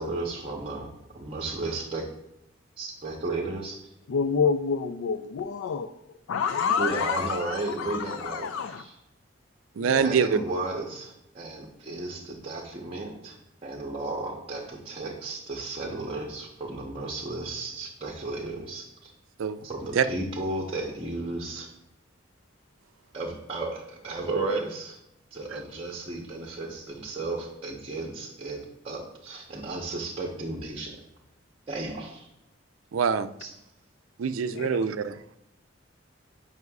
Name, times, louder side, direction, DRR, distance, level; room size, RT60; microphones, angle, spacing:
voice 1, 0.0-2.0 2.8-3.8 6.8-8.9 9.8-19.1 19.6-21.7 23.1-25.0 25.3-30.9 31.7-32.3 33.4-33.5, right 2 dB, 30° right, -1 dB, 0.9 m, -34 dB
voice 2, 4.1-5.9 6.3-8.8 9.8-10.1 34.5-34.8, left 6 dB, 75° left, 9 dB, 0.4 m, -28 dB
voice 3, 9.8-10.3 19.4-19.6 20.0-20.1 32.9-33.3 34.2-35.4, right 6 dB, 85° right, 12 dB, 0.4 m, -25 dB
9.3 x 5.5 x 2.4 m, 0.84 s
head